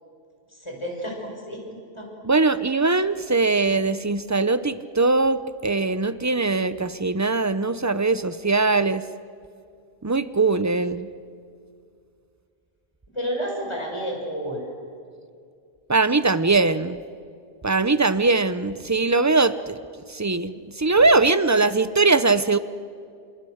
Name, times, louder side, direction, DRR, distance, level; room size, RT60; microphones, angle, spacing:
voice 1, 0.6-2.1 13.1-14.7, equal, 25° left, 0 dB, 6.3 m, -31 dB
voice 2, 2.2-9.0 10.0-11.1 15.9-17.0 17.6-19.8 20.1-22.6, right 3 dB, 20° right, 13 dB, 0.7 m, -21 dB
29.5 x 28.0 x 6.5 m, 2.3 s
omnidirectional pair, 1.0 m